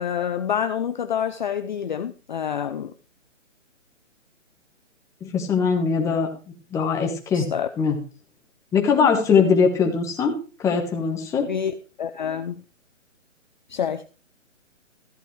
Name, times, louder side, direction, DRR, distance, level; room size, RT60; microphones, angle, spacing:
voice 1, 0.0-2.9 7.3-7.7 11.5-12.6 13.7-14.0, left 8 dB, 40° left, 0.5 m, -27 dB
voice 2, 5.2-6.3 6.7-7.5 7.8-8.0 8.7-10.3 10.6-11.5, left 6 dB, 10° left, 1.2 m, -21 dB
14.0 x 9.8 x 3.2 m
hypercardioid pair, 150°, 38 cm